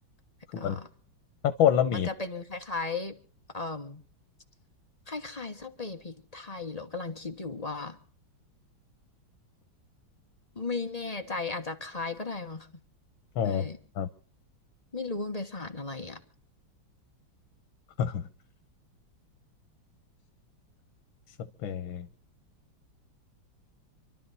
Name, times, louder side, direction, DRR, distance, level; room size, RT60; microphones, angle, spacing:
voice 1, 0.5-0.9 1.9-3.2 3.5-4.0 5.1-8.0 10.5-12.7 13.4-13.8 14.9-16.2, left 3 dB, 25° left, 6 dB, 1.2 m, -36 dB
voice 2, 1.4-2.1 13.4-13.7 14.0-14.1 18.0-18.3 21.6-22.1, left 9 dB, 90° left, 10 dB, 1.7 m, -26 dB
27.5 x 12.0 x 4.1 m, 0.43 s
omnidirectional pair, 2.1 m